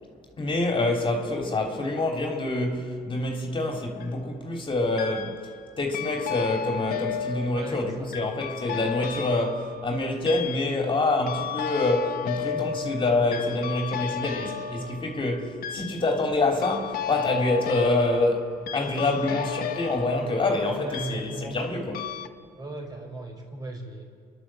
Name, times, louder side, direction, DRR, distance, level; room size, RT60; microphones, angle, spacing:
voice 1, 0.4-5.5 5.8-22.1, left 2 dB, 30° left, 3.2 m, -26 dB
sound 1, 3.7-4.2 5.0-5.6 5.9-21.7 21.9-22.3, left 8 dB, 60° left, 1.2 m, -35 dB
voice 2, 7.5-8.1 12.4-15.1 18.9-19.2 20.0-20.4 20.8-21.5 22.6-24.0, right 2 dB, 25° right, 4.9 m, -38 dB
30.0 x 11.5 x 7.6 m
cardioid pair, 110°, 17 cm